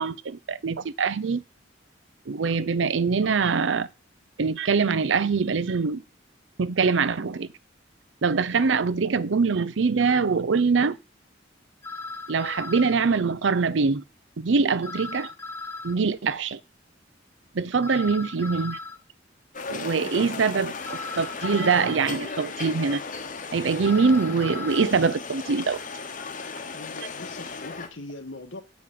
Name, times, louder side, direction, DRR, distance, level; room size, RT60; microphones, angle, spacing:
voice 1, 0.0-1.4 2.3-3.9 4.4-6.0 6.6-7.5 8.2-11.0 12.3-14.0 14.4-15.3 15.8-16.6 17.5-18.8 19.7-23.0 23.5-25.8, right 5 dB, 75° right, 0.6 m, -23 dB
sound 1, 11.8-13.0 14.8-16.0 17.8-19.0 20.8-22.0 23.8-24.9, left 3 dB, 15° left, 0.6 m, -37 dB
sound 2, 19.5-27.9, left 4 dB, 45° left, 1.1 m, -36 dB
voice 2, 20.0-20.7 26.7-28.6, left 2 dB, 85° left, 1.6 m, -41 dB
8.5 x 5.1 x 6.7 m
head